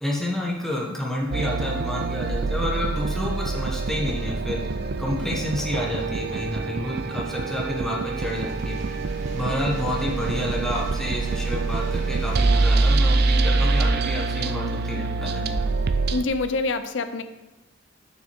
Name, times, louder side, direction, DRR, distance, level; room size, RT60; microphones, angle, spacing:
voice 1, 0.0-4.6 5.0-8.8 9.3-15.7, left 1 dB, ahead, -3 dB, 1.3 m, -29 dB
sound 1, 1.3-16.2, right 3 dB, 55° right, 0.5 m, -25 dB
sound 2, 8.2-13.9, right 1 dB, 40° right, 1.9 m, -43 dB
voice 2, 16.1-17.2, left 3 dB, 70° left, 10 dB, 0.5 m, -26 dB
6.6 x 6.3 x 4.4 m, 1.0 s
head